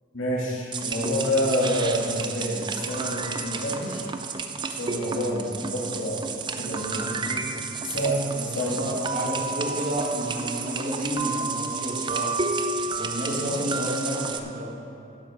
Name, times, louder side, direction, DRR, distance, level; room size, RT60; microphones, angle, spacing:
voice 1, 0.1-4.1 4.7-6.3 6.6-7.5 7.8-8.8 13.3-13.5, equal, 85° left, -5 dB, 2.4 m, -28 dB
sound 1, 0.7-14.4, right 4 dB, 25° right, 0.5 m, -31 dB
voice 2, 8.6-12.3 12.9-14.7, equal, 40° right, -3 dB, 1.9 m, -30 dB
12.0 x 7.9 x 5.2 m, 2.6 s
head